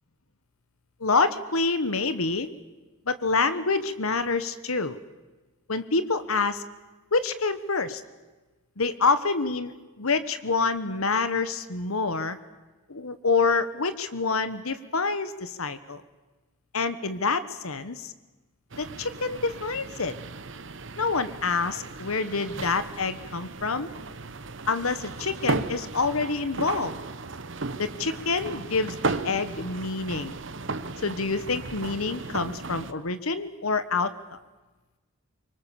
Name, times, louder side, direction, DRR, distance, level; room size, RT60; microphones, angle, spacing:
voice 1, 1.0-2.5 3.1-5.0 5.7-6.6 7.1-8.0 8.8-12.4 12.9-16.0 16.7-18.1 18.8-20.1 21.0-23.9 24.7-26.9 27.8-30.4 31.0-34.4, left 4 dB, 90° left, 12 dB, 1.3 m, -27 dB
sound 1, 18.7-32.9, right 3 dB, 60° right, 1.1 m, -35 dB
25.5 x 24.0 x 7.1 m, 1.2 s
head